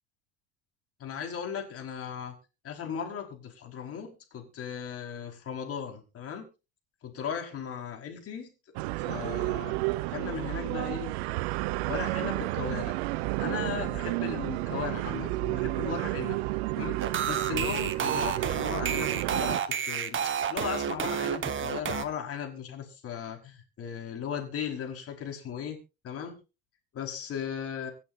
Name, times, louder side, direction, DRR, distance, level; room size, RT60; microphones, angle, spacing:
voice 1, 1.0-2.3 2.6-6.5 7.0-8.5 9.1-9.8 10.1-11.1 11.9-13.0 13.4-16.4 16.8-25.8 26.0-26.4 26.9-27.9, left 7 dB, 45° left, 3 dB, 5.2 m, -37 dB
sound 1, 8.8-19.6, right 19 dB, 65° right, 0.7 m, -31 dB
sound 2, 17.0-22.1, right 8 dB, 35° right, 1.7 m, -30 dB
25.5 x 8.5 x 2.8 m, 0.30 s
hypercardioid pair, 75°, 34 cm